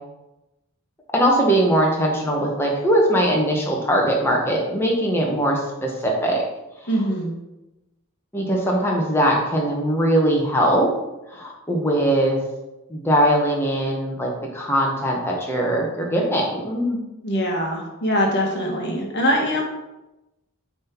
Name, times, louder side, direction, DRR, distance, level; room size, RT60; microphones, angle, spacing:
voice 1, 1.1-6.4 8.3-10.9 11.3-12.4 12.9-17.0, right 1 dB, 10° left, -1 dB, 1.2 m, -21 dB
voice 2, 6.9-7.4 17.2-19.6, equal, 50° left, 0 dB, 1.5 m, -22 dB
7.6 x 3.6 x 4.5 m, 0.98 s
head